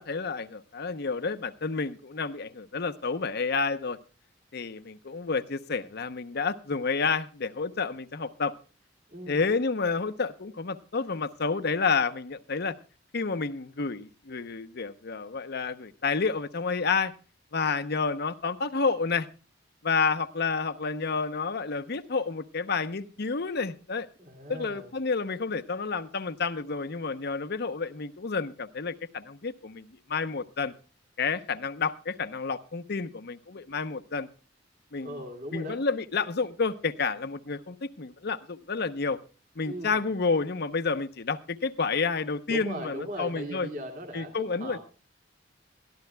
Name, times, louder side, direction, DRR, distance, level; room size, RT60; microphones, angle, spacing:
voice 1, 0.0-4.0 4.5-8.5 9.3-12.7 13.1-17.1 17.5-19.3 19.8-24.1 24.5-30.7 31.2-34.3 34.9-35.2 35.5-39.2 39.6-43.7 44.1-44.8, left 4 dB, 60° left, 11 dB, 0.8 m, -30 dB
voice 2, 24.2-24.9 35.0-35.8 39.6-40.0 42.5-44.8, equal, 45° right, 4 dB, 2.5 m, -38 dB
22.5 x 13.5 x 2.2 m, 0.35 s
head